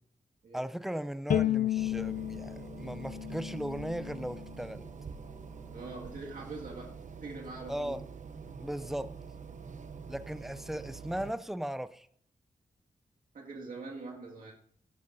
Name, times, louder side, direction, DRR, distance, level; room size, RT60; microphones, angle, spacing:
voice 1, 0.5-4.9 7.7-8.0 8.6-9.1 10.1-12.1, right 1 dB, ahead, 13 dB, 0.4 m, -37 dB
Bowed string instrument, 1.3-4.5, left 11 dB, 75° left, 0.4 m, -33 dB
sound 1, 1.8-11.3, right 5 dB, 60° right, 0.7 m, -46 dB
voice 2, 5.7-8.0 13.3-14.5, right 3 dB, 80° right, -1 dB, 2.0 m, -43 dB
17.0 x 11.0 x 2.7 m, 0.64 s
wide cardioid pair, 95°, 14 cm